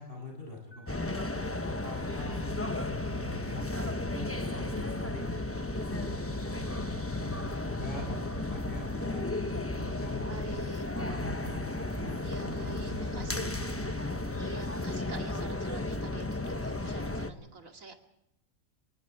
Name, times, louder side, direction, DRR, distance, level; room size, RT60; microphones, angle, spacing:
voice 1, 0.0-5.3 5.7-10.6 10.9-13.9, left 2 dB, 45° left, 0 dB, 8.2 m, -44 dB
sound 1, 0.7-15.7, right 7 dB, 75° left, 4.2 m, -58 dB
sound 2, 0.9-17.3, left 2 dB, 10° left, 0.9 m, -34 dB
voice 2, 4.5-5.1 7.9-8.4 10.3-10.8 12.2-13.6 14.4-17.9, right 3 dB, 90° right, 4 dB, 2.8 m, -47 dB
26.0 x 20.5 x 4.8 m, 0.84 s
omnidirectional pair, 1.4 m